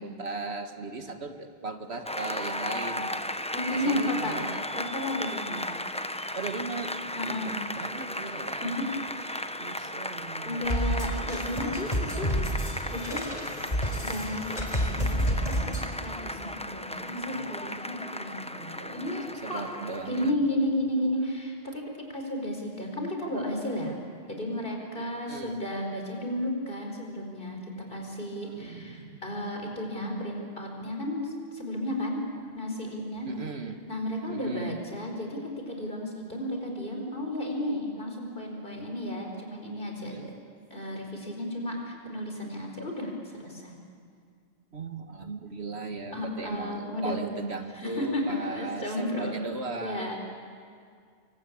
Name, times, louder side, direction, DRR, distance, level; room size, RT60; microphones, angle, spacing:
voice 1, 0.0-3.2 3.7-4.6 6.4-8.7 9.6-10.8 19.4-20.4 25.0-25.6 28.6-29.2 33.3-33.8 34.3-34.8 44.7-50.1, right 3 dB, 90° right, 6 dB, 2.1 m, -37 dB
Applause, 2.1-20.3, left 1 dB, 5° left, 0.7 m, -36 dB
voice 2, 3.5-5.7 7.1-7.7 8.5-9.6 10.4-12.3 12.9-13.6 14.0-15.4 15.6-19.6 20.0-24.0 24.3-27.6 27.9-32.2 32.5-33.3 33.9-40.3 40.7-43.7 46.1-47.3 47.7-49.4 49.8-50.3, left 1 dB, 55° left, 1 dB, 4.9 m, -33 dB
sound 1, 10.7-15.8, equal, 40° left, 4.2 m, -29 dB
27.5 x 24.0 x 8.7 m, 2.2 s
omnidirectional pair, 1.1 m